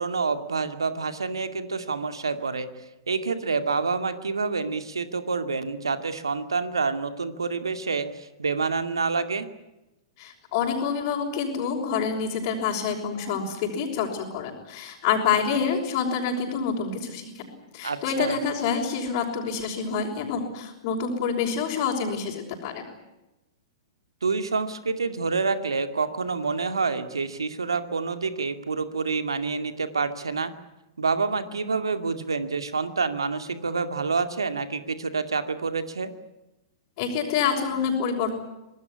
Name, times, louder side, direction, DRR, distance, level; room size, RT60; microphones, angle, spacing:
voice 1, 0.0-2.7 3.1-9.5 17.8-18.4 24.2-30.5 31.0-36.1, right 4 dB, 80° right, 9 dB, 2.3 m, -27 dB
voice 2, 10.2-17.5 17.7-22.9 37.0-38.4, left 6 dB, 45° left, -4 dB, 5.8 m, -27 dB
25.5 x 19.0 x 9.8 m, 0.98 s
figure-of-eight pair, 105°, 2 cm